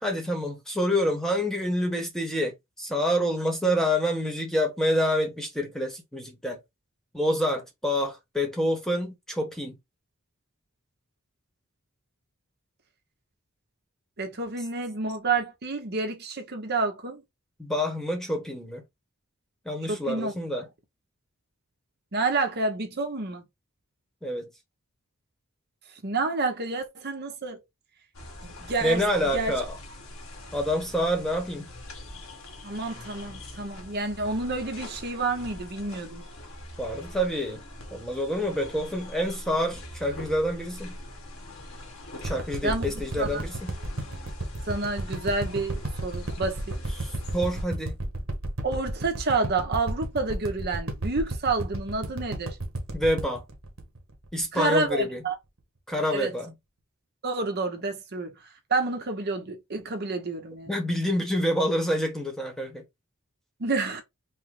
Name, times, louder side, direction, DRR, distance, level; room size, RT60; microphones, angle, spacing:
voice 1, 0.0-6.6 7.1-9.8 17.6-18.8 19.6-20.7 24.2-24.5 28.8-29.7 30.5-31.7 36.8-37.6 37.9-41.0 42.2-43.8 47.0-47.9 52.9-53.4 54.3-55.2 55.9-56.5 60.7-62.8, equal, ahead, 1.1 m, -27 dB
voice 2, 14.2-17.2 19.9-20.3 22.1-23.4 26.0-27.6 28.4-29.0 29.3-29.5 32.6-36.2 42.6-42.8 43.2-43.4 44.7-46.7 48.6-52.6 54.5-55.4 56.1-56.3 57.2-58.3 58.7-60.7 63.6-64.0, right 3 dB, 50° right, 1.0 m, -29 dB
sound 1, 28.1-47.6, left 1 dB, 85° left, 1.5 m, -43 dB
sound 2, 42.2-54.6 55.0-55.1, right 1 dB, 70° right, 1.3 m, -32 dB
5.4 x 2.1 x 3.7 m
head